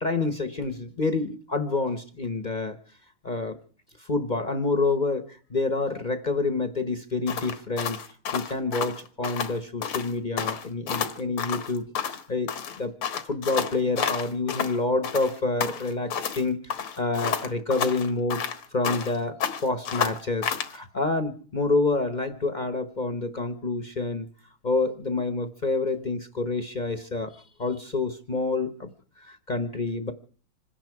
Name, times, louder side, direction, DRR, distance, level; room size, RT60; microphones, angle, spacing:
voice 1, 0.0-2.8 3.2-3.6 4.1-8.0 8.3-12.5 12.8-12.9 13.2-18.4 18.7-24.3 24.6-27.3 27.6-28.9 29.2-30.1, left 3 dB, 35° left, 9 dB, 0.7 m, -28 dB
sound 1, 7.3-9.5 9.8-10.1 10.4-12.2 12.5-14.8 15.0-16.4 16.7-19.2 19.4-20.7, left 7 dB, 90° left, 2.3 m, -30 dB
26.5 x 10.5 x 4.7 m, 0.43 s
omnidirectional pair, 2.3 m